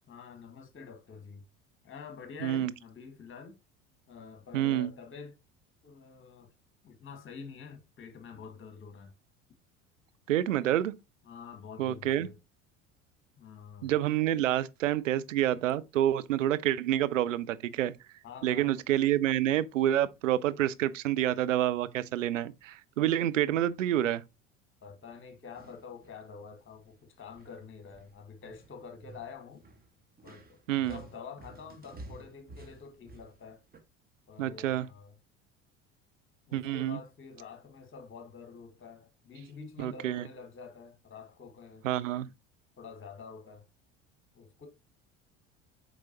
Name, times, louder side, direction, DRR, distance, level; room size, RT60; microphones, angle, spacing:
voice 1, 0.1-1.4 1.8-3.6 4.1-5.4 5.8-6.5 6.8-9.1 11.3-12.4 13.4-13.9 18.2-18.7 24.8-29.6 30.2-33.6 34.3-35.1 36.5-41.9 42.2-42.3 42.8-43.7 44.4-44.7, left 5 dB, 30° left, 1.8 m, -47 dB
voice 2, 2.4-2.7 4.5-4.9 10.3-10.9 11.8-12.3 13.8-17.9 18.4-24.2 30.7-31.0 34.4-34.9 36.5-37.0 39.8-40.2 41.8-42.3, right 12 dB, 75° right, 0.6 m, -28 dB
sound 1, 25.1-26.2 26.6-27.0 27.3-33.8, right 2 dB, 25° right, 1.4 m, -53 dB
7.8 x 4.7 x 2.9 m
figure-of-eight pair, 65°, 39 cm